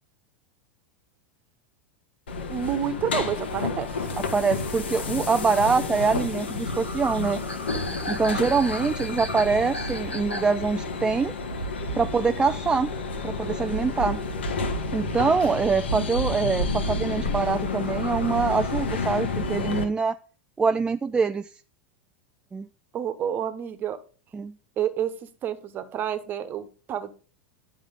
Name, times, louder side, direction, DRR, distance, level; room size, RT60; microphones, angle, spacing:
sound 1, 2.3-19.8, left 3 dB, 70° left, 1.4 m, -30 dB
voice 1, 2.5-4.1 22.9-24.0 24.8-25.1 25.4-27.1, right 9 dB, 30° right, 12 dB, 1.2 m, -29 dB
voice 2, 4.2-7.4 8.1-11.3 11.9-12.9 13.2-14.2 14.9-20.2 20.6-21.5 22.5-22.7 24.3-24.5, right 5 dB, 15° right, 10 dB, 0.4 m, -24 dB
sound 2, 5.5-15.4 15.8-16.8 17.3-18.8, left 2 dB, 85° left, 1.2 m, -39 dB
10.5 x 5.9 x 5.2 m, 0.38 s
figure-of-eight pair, 85°, 6 cm